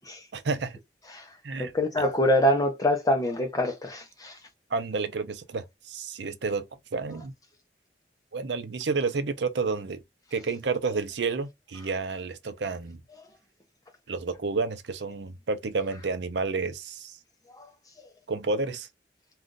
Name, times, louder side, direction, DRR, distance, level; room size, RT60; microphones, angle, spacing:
voice 1, 0.3-0.8 1.4-1.7 2.0-2.1 4.7-6.6 6.9-7.3 8.3-10.0 10.3-13.0 14.1-17.2 18.3-18.9, right 4 dB, 90° right, 0.6 m, -30 dB
voice 2, 1.6-4.4 17.5-17.7, equal, 20° left, 0.7 m, -25 dB
2.5 x 2.4 x 3.7 m
head